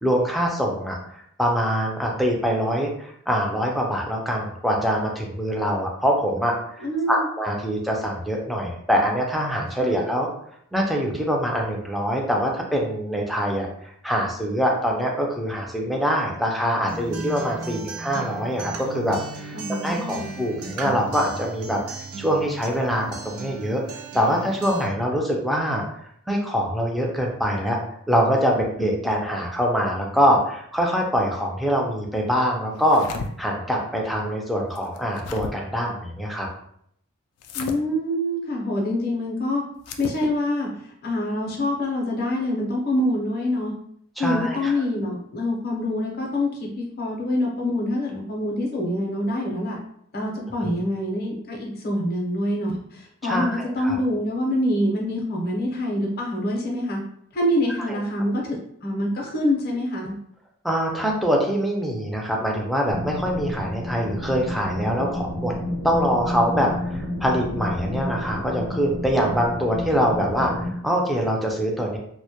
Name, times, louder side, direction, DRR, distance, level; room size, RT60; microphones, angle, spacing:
voice 1, 0.0-1.0 1.4-10.3 10.7-13.7 14.0-21.8 22.2-23.8 24.1-25.8 26.3-27.8 28.1-33.0 33.4-36.5 44.2-44.7 50.6-50.7 53.2-54.0 60.6-65.5 65.8-72.0, equal, ahead, -1 dB, 0.3 m, -24 dB
voice 2, 6.8-7.3 9.8-10.0 19.5-20.3 37.5-39.6 40.0-43.7 44.2-49.8 50.1-57.0 57.3-60.1, left 1 dB, 45° left, -1 dB, 0.6 m, -25 dB
Acoustic guitar, 16.9-24.9, right 3 dB, 75° right, 0.4 m, -36 dB
sound 1, 32.7-33.3 34.8-35.5 37.4-37.8 39.8-40.2, left 4 dB, 90° left, 0.3 m, -34 dB
sound 2, 62.9-70.7, left 1 dB, 55° right, 0.7 m, -30 dB
2.1 x 2.1 x 2.7 m, 0.69 s
head